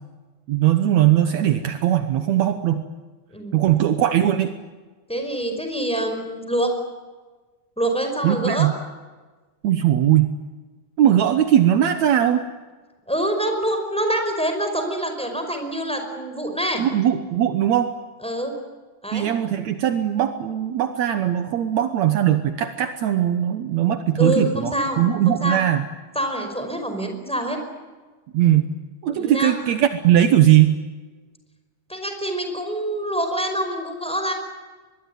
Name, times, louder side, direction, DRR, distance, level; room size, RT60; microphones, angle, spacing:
voice 1, 0.5-2.9 3.5-4.5 8.2-8.7 9.6-10.3 11.0-12.5 16.8-17.9 19.1-25.8 28.3-28.7 29.0-30.8, right 11 dB, 70° right, 9 dB, 2.3 m, -19 dB
voice 2, 5.1-6.7 7.8-8.7 13.1-16.8 18.2-18.6 19.0-19.3 24.2-25.6 26.2-27.6 29.1-29.5 31.9-34.3, right 1 dB, ahead, 5 dB, 5.1 m, -25 dB
25.0 x 21.5 x 9.8 m, 1.3 s
omnidirectional pair, 3.4 m